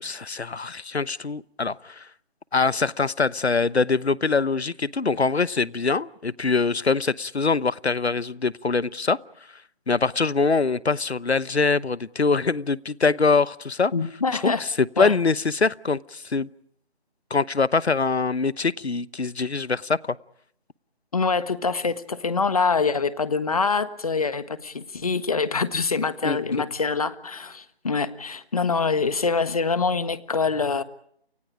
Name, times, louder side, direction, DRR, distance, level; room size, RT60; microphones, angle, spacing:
voice 1, 0.0-2.1 2.5-13.9 14.3-16.5 17.3-20.2 26.2-26.4, left 4 dB, 85° left, 1.0 m, -24 dB
voice 2, 13.9-14.6 15.0-15.1 21.1-30.8, left 4 dB, 35° left, 1.5 m, -25 dB
29.5 x 29.0 x 5.1 m
figure-of-eight pair, 165°, 31 cm